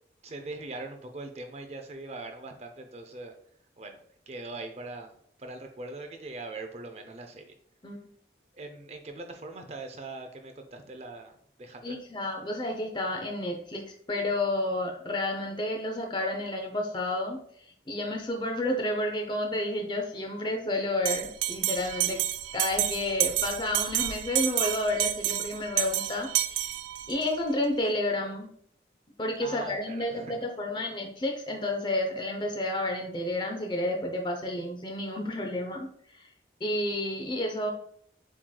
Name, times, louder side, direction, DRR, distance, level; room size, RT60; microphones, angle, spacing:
voice 1, 0.2-3.3 3.8-4.0 4.3-5.1 5.4-7.6 8.5-11.3 11.6-12.0 29.4-30.4, right 2 dB, 35° right, 5 dB, 0.5 m, -41 dB
voice 2, 11.8-17.4 17.9-22.2 22.5-26.7 27.1-28.5 29.2-35.9 36.1-36.3 36.6-37.7, left 1 dB, 25° left, 2 dB, 0.6 m, -30 dB
Bell, 21.0-27.3, right 13 dB, 90° right, 0.3 m, -29 dB
7.2 x 3.1 x 2.2 m, 0.65 s
head